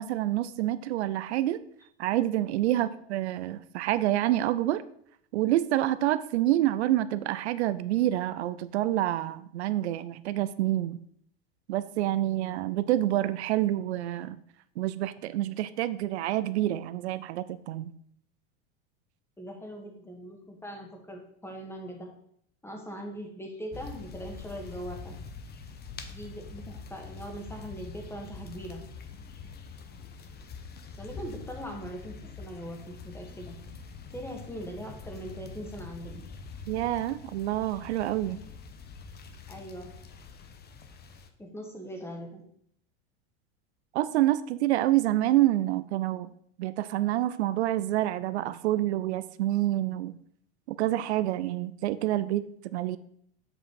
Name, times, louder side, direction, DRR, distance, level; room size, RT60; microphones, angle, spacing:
voice 1, 0.0-1.6 2.0-4.8 5.3-11.0 11.7-14.4 14.8-17.9 36.7-38.4 43.9-46.3 46.6-50.2 50.7-53.0, right 14 dB, 80° right, 15 dB, 0.5 m, -27 dB
voice 2, 19.4-22.1 22.6-25.2 26.1-28.9 31.0-33.6 34.1-36.2 38.3-38.5 39.5-39.9 41.4-42.4, equal, 5° left, 2 dB, 1.8 m, -41 dB
sound 1, 23.7-41.3, left 5 dB, 30° left, 0.9 m, -45 dB
7.5 x 5.0 x 4.8 m, 0.67 s
hypercardioid pair, 100°, 33 cm